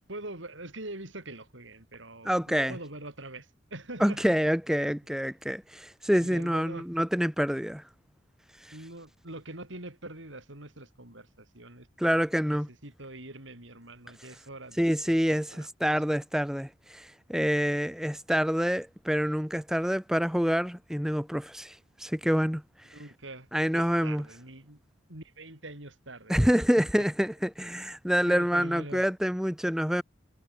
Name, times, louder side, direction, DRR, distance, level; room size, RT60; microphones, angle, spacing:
voice 1, 0.1-4.2 6.2-6.9 8.7-15.2 15.5-15.7 22.9-23.5 23.7-24.8 25.1-26.4 28.3-29.0, right 2 dB, 85° right, 6.9 m, -44 dB
voice 2, 2.2-2.7 4.0-7.8 8.6-8.7 12.0-12.7 14.8-22.6 23.5-24.2 26.3-30.0, equal, 5° right, 1.0 m, -27 dB
head